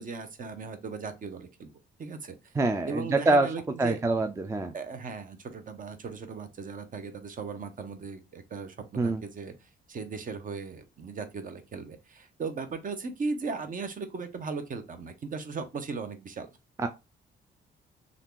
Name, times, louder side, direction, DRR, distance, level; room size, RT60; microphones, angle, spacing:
voice 1, 0.0-1.7 2.0-2.5 2.8-4.0 4.7-16.5, right 4 dB, 45° right, 0.7 m, -37 dB
voice 2, 2.6-3.5 3.8-4.7 9.0-9.2 16.8-16.9, right 2 dB, 15° right, 0.4 m, -25 dB
2.7 x 2.4 x 3.6 m
cardioid pair, 90°, 20 cm